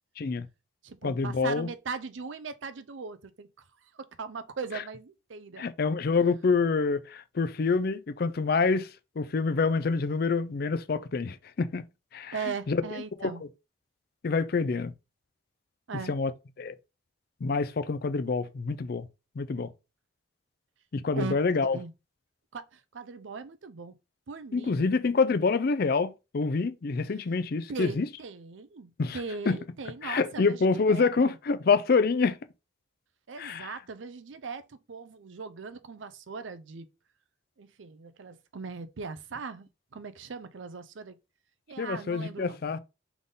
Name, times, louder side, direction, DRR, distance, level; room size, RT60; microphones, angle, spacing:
voice 1, 0.2-0.5 1.0-1.7 4.7-4.8 5.6-8.9 9.2-11.8 12.1-12.4 12.7-13.3 14.2-14.9 16.1-16.3 16.6-16.8 17.4-19.1 19.4-19.7 20.9-21.8 24.5-28.1 29.0-29.2 29.5-29.6 30.0-32.4 33.4-33.7 41.8-42.8, left 4 dB, 50° left, 0.4 m, -27 dB
voice 2, 0.8-3.5 3.9-5.7 12.3-13.4 15.9-16.1 21.1-21.3 21.6-21.9 22.5-24.0 24.3-24.9 27.7-31.4 33.3-36.9 37.6-41.2 41.7-42.6, right 4 dB, 75° right, 0.6 m, -39 dB
3.7 x 3.5 x 3.9 m
head